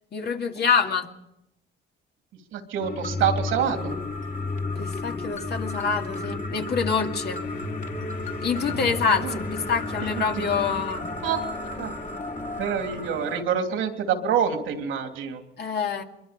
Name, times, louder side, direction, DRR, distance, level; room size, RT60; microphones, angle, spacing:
voice 1, 0.1-1.1 4.8-7.4 8.4-11.1 15.6-16.0, left 6 dB, 55° left, 3 dB, 2.4 m, -26 dB
voice 2, 2.5-4.0 8.6-8.9 9.2-9.4 10.1-10.2 11.2-11.4 11.8-11.9 12.6-15.4, right 8 dB, 90° right, 4 dB, 3.1 m, -27 dB
sound 1, 2.8-13.4, left 2 dB, 40° left, 2.8 m, -32 dB
23.5 x 23.5 x 5.2 m, 0.84 s
cardioid pair, 90°, 20 cm